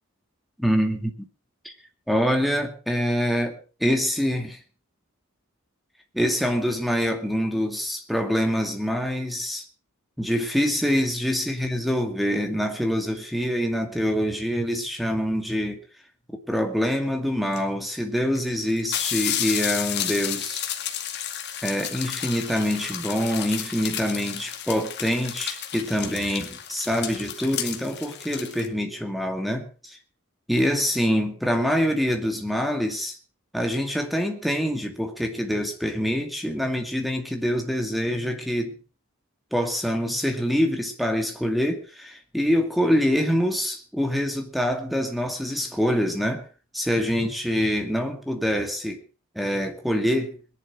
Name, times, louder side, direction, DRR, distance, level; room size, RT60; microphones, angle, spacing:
voice 1, 0.6-1.3 1.6-1.7 2.1-4.6 6.1-9.6 10.2-15.8 16.5-20.6 21.6-30.0 30.5-33.2 33.5-38.8 39.5-46.5 46.7-49.0 49.4-50.4, equal, ahead, 2.3 m, -25 dB
sound 1, 17.5-17.6 18.3-18.4 18.7-28.7, left 10 dB, 50° left, 2.2 m, -32 dB
22.0 x 11.0 x 4.6 m
head